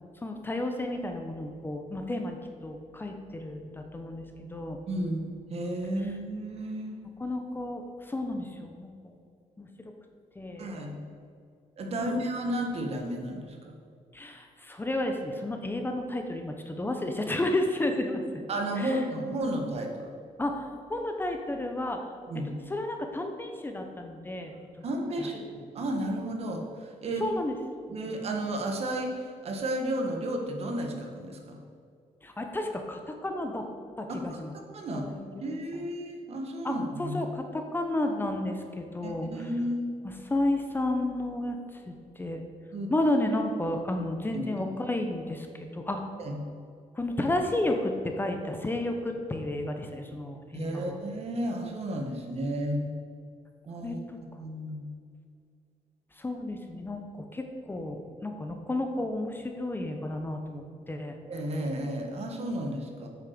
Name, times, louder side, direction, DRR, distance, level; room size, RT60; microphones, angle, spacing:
voice 1, 0.2-4.8 7.2-9.1 9.6-9.7 10.3-10.7 12.0-12.2 14.1-18.4 18.8-19.0 20.4-22.1 22.3-24.5 27.2-27.5 32.2-33.7 34.0-34.5 34.9-35.6 36.6-39.5 40.0-42.4 42.9-46.0 46.9-51.0 53.8-54.2 56.1-61.2, left 1 dB, 15° left, 4 dB, 0.9 m, -32 dB
voice 2, 4.9-7.0 10.6-11.0 11.8-13.7 18.5-20.1 22.3-22.5 24.8-25.4 25.7-27.3 27.9-31.6 34.1-34.4 34.7-35.1 35.4-37.2 39.0-39.9 42.7-42.9 44.3-44.4 46.2-46.4 50.5-52.8 53.6-54.8 61.3-63.1, right 1 dB, 50° right, 2 dB, 1.7 m, -32 dB
8.8 x 6.5 x 6.8 m, 2.3 s
cardioid pair, 125°, 13 cm